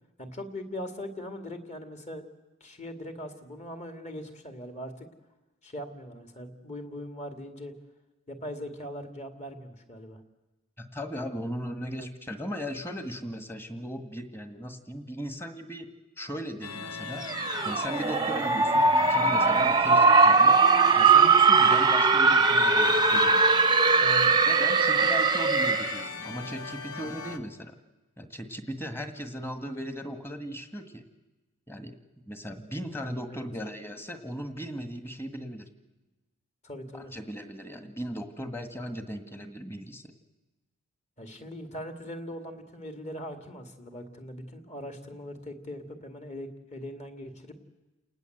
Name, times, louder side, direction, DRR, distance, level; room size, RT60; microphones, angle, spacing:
voice 1, 0.2-2.2 2.6-5.1 5.6-7.7 8.3-10.2 12.0-12.1 19.9-20.0 23.9-24.3 33.3-33.5 36.6-37.1 41.2-47.5, left 1 dB, 30° left, 7 dB, 2.5 m, -40 dB
voice 2, 10.8-15.9 16.2-17.2 17.6-20.5 21.0-23.5 24.5-27.8 28.2-31.1 31.7-32.0 32.3-35.7 36.9-40.1, equal, 10° left, 8 dB, 1.8 m, -37 dB
sound 1, 16.6-27.4, left 5 dB, 80° left, 1.6 m, -39 dB
sound 2, 17.2-26.1, right 4 dB, 20° right, 0.9 m, -21 dB
29.5 x 19.0 x 8.0 m, 1.1 s
head